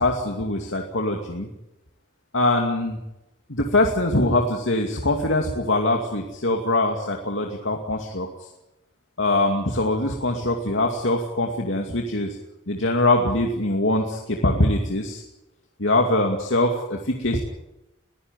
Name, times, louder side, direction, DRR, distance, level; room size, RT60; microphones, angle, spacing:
voice 1, 0.0-1.5 2.3-3.0 3.5-8.5 9.2-12.4 12.7-15.2 15.8-17.4, left 2 dB, 80° left, 2 dB, 2.5 m, -23 dB
22.0 x 16.0 x 9.8 m, 0.94 s
head